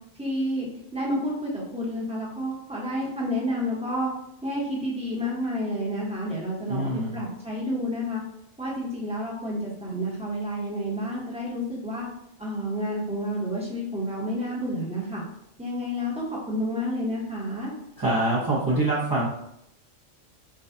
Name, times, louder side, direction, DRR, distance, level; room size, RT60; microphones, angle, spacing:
voice 1, 0.2-4.1 4.4-8.2 8.6-12.1 12.4-15.2 15.6-17.7, equal, 5° right, -5 dB, 1.0 m, -30 dB
voice 2, 6.7-7.2 18.0-19.3, right 2 dB, 20° right, -7 dB, 0.7 m, -24 dB
6.0 x 2.4 x 2.7 m, 0.78 s
omnidirectional pair, 1.3 m